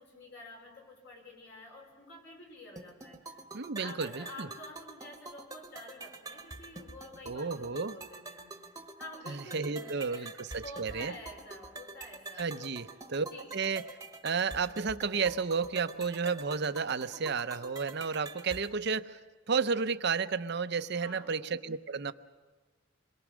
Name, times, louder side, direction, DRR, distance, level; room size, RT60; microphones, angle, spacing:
voice 1, 0.0-3.4 3.8-8.5 9.0-10.3 10.6-12.7 13.2-13.5 20.9-21.3, left 1 dB, 60° left, 0 dB, 5.4 m, -49 dB
sound 1, 2.8-18.8, right 3 dB, 20° right, 1.2 m, -47 dB
voice 2, 3.5-4.5 7.3-8.0 9.3-11.1 12.4-13.3 13.5-13.8 14.2-19.2 19.5-22.1, right 5 dB, 60° right, 11 dB, 0.7 m, -32 dB
27.0 x 22.5 x 6.3 m, 1.3 s
head